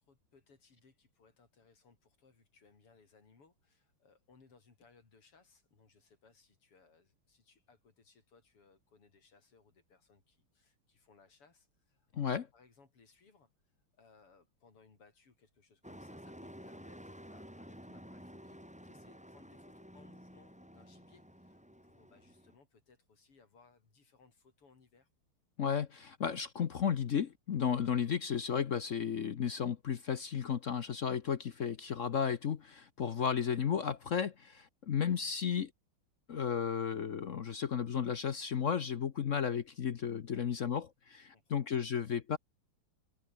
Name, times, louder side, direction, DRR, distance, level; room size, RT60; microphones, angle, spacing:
voice 1, 0.0-25.1 40.3-40.4 41.3-41.7, left 4 dB, 90° left, 5.1 m, -66 dB
voice 2, 12.1-12.4 25.6-35.7 36.3-42.4, left 7 dB, 55° left, 0.8 m, -34 dB
Truck, 15.8-22.6, equal, 5° right, 6.3 m, -52 dB
open air
omnidirectional pair, 2.4 m